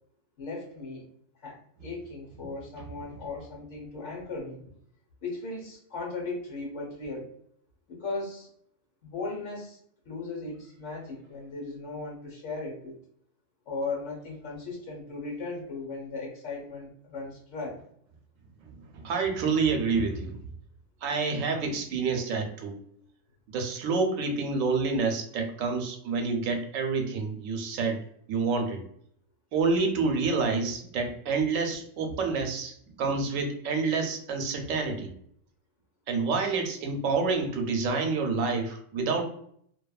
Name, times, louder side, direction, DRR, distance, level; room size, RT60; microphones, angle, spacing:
voice 1, 0.4-1.1 1.4-4.6 5.2-7.3 7.9-8.5 9.0-9.8 10.0-13.0 13.7-17.8, left 3 dB, 65° left, -2 dB, 1.3 m, -37 dB
voice 2, 18.6-20.4 21.0-22.8 23.5-28.0 28.3-28.8 29.5-35.1 36.1-39.2, right 4 dB, 85° right, 3 dB, 1.0 m, -28 dB
2.7 x 2.2 x 2.3 m, 0.66 s
omnidirectional pair, 1.3 m